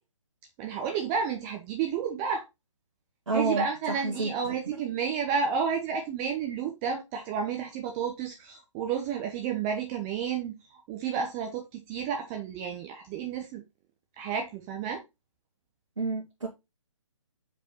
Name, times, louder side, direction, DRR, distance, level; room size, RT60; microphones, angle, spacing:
voice 1, 0.6-2.5 3.3-13.6 14.2-15.0, right 6 dB, 15° right, 0.8 m, -31 dB
voice 2, 3.3-4.3 4.7-4.8 16.0-16.5, right 3 dB, 65° right, 2.3 m, -29 dB
5.2 x 4.4 x 5.1 m
figure-of-eight pair, 140°, 17 cm